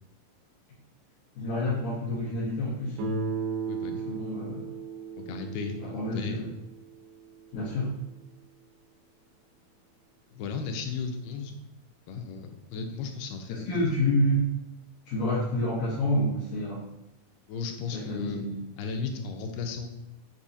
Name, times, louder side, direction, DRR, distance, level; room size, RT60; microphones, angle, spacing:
voice 1, 1.4-3.0 3.9-4.7 5.8-6.5 7.5-7.9 13.5-14.5 15.1-16.8 17.9-18.5, left 1 dB, 70° left, -9 dB, 2.4 m, -28 dB
Guitar, 3.0-7.8, right 4 dB, 90° right, 2.5 m, -36 dB
voice 2, 3.7-4.1 5.2-6.4 10.3-11.6 12.1-13.9 17.5-18.4 18.8-19.9, left 5 dB, 90° left, 5 dB, 2.2 m, -35 dB
6.9 x 2.7 x 2.6 m, 0.91 s
omnidirectional pair, 3.8 m